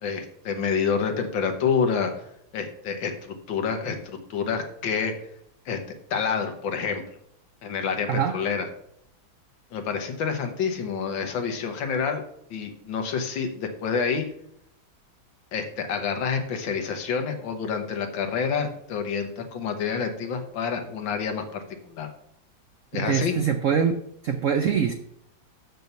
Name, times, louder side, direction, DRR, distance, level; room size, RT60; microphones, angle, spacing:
voice 1, 0.0-2.1 2.5-5.1 5.7-5.8 6.1-7.0 7.6-8.7 9.7-12.2 12.5-14.3 15.5-22.1 22.9-23.3, left 6 dB, 75° left, 5 dB, 1.8 m, -28 dB
voice 2, 22.9-23.9 24.2-24.9, right 7 dB, 80° right, 7 dB, 0.7 m, -23 dB
6.7 x 6.1 x 6.8 m, 0.73 s
omnidirectional pair, 2.1 m